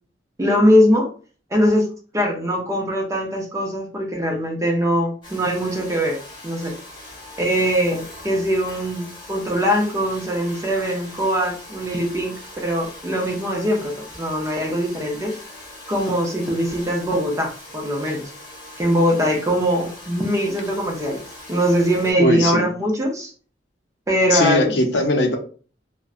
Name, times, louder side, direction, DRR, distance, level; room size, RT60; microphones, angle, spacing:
voice 1, 0.4-1.1 1.5-1.9 2.1-6.2 6.4-6.7 7.4-15.3 15.9-18.3 18.8-21.2 21.5-23.3 24.1-24.7, equal, 20° right, 0 dB, 0.5 m, -21 dB
Domestic sounds home sounds, 5.2-22.1, left 1 dB, 30° left, 1.1 m, -41 dB
voice 2, 22.2-22.7 24.3-25.4, left 1 dB, 80° left, 4 dB, 0.5 m, -19 dB
2.5 x 2.1 x 2.4 m, 0.40 s
head